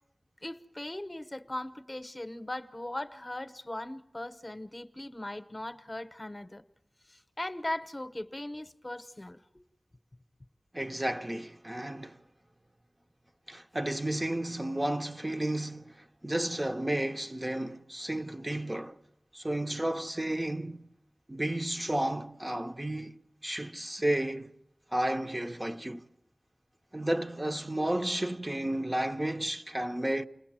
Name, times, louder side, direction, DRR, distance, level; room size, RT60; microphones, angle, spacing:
voice 1, 0.4-6.6 7.1-9.4, left 1 dB, 35° left, 0.9 m, -39 dB
voice 2, 10.7-12.2 13.5-19.0 19.3-20.9 21.3-24.5 24.9-26.0 26.9-30.2, right 1 dB, 25° right, 0.8 m, -32 dB
29.0 x 20.5 x 7.6 m
wide cardioid pair, 45°, 0 cm